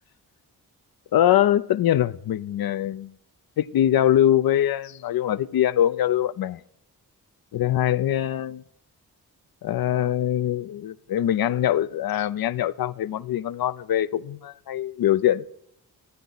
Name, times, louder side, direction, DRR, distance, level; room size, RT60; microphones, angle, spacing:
voice 1, 1.1-3.1 3.6-6.6 7.5-8.6 9.6-15.5, left 11 dB, 65° left, 0.5 m, -23 dB
11.5 x 9.2 x 4.0 m
cardioid pair, 50°, 39 cm